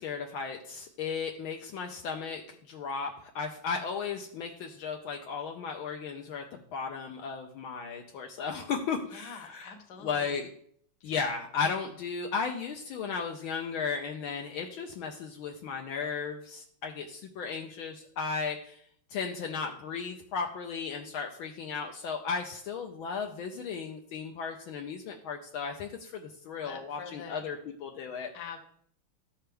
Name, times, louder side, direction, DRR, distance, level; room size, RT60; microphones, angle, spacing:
voice 1, 0.0-9.8 10.0-10.5 11.0-18.8 19.1-28.3, left 5 dB, 75° left, 3 dB, 1.5 m, -35 dB
voice 2, 9.1-10.4 26.6-27.4 28.3-28.6, left 6 dB, 55° left, 5 dB, 1.5 m, -45 dB
13.0 x 5.7 x 3.4 m, 0.62 s
omnidirectional pair, 2.4 m